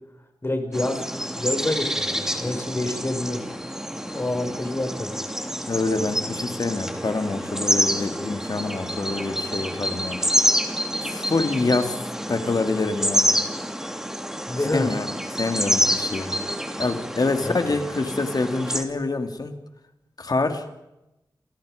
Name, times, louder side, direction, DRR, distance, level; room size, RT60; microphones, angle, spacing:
voice 1, 0.4-1.1 1.4-3.4 4.0-5.2 14.5-14.9 17.4-17.8, left 2 dB, 30° left, 5 dB, 5.9 m, -27 dB
sound 1, 0.7-18.8, equal, 5° right, 3.1 m, -27 dB
voice 2, 5.7-10.2 11.0-12.0 12.3-13.3 14.7-15.1 15.4-16.3 16.8-19.5 20.2-20.6, left 3 dB, 55° left, 7 dB, 3.0 m, -26 dB
29.5 x 27.0 x 5.4 m, 0.93 s
wide cardioid pair, 70°, 8 cm